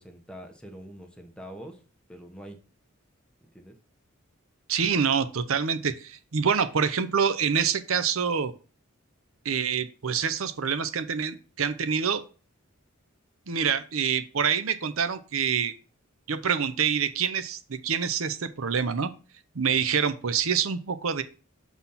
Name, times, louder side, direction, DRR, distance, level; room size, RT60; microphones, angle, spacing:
voice 1, 0.0-1.8 2.1-2.6 3.5-3.8, equal, 5° left, 3 dB, 1.1 m, -44 dB
voice 2, 4.7-8.5 9.4-12.2 13.5-15.7 16.3-19.1 19.5-21.2, right 6 dB, 75° right, 12 dB, 0.7 m, -26 dB
7.1 x 4.1 x 5.7 m, 0.35 s
head